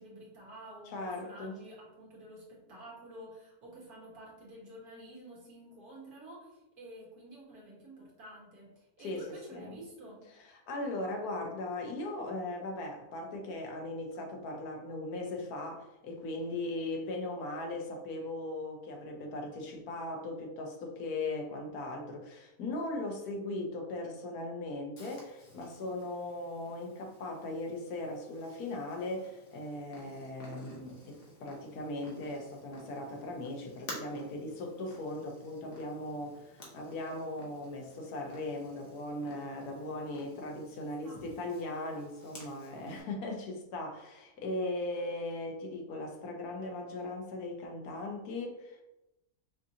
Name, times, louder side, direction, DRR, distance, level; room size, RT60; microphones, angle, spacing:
voice 1, 0.0-10.3 41.0-41.3 42.8-43.0, right 1 dB, 85° right, -4 dB, 2.0 m, -50 dB
voice 2, 0.9-1.5 9.0-9.3 9.5-9.8 10.7-48.8, left 2 dB, 80° left, 2 dB, 1.3 m, -38 dB
Purr, 25.0-43.0, left 1 dB, 55° left, 1.3 m, -53 dB
5.9 x 2.7 x 2.7 m, 0.92 s
omnidirectional pair, 1.6 m